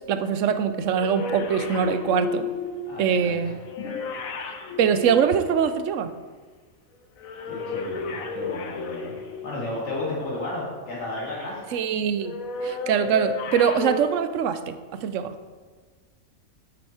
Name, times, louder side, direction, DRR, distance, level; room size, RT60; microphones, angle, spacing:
voice 1, 0.1-2.5 3.0-3.6 4.4-6.1 11.7-12.4 12.6-15.3, right 7 dB, 70° right, 11 dB, 0.9 m, -23 dB
sound 1, 0.9-5.9 7.2-9.8 12.2-14.0, left 3 dB, 75° left, 1.3 m, -33 dB
voice 2, 2.9-4.0 7.4-9.1 9.4-11.6, left 2 dB, 55° left, -6 dB, 2.7 m, -33 dB
8.8 x 8.2 x 4.3 m, 1.5 s
omnidirectional pair, 1.4 m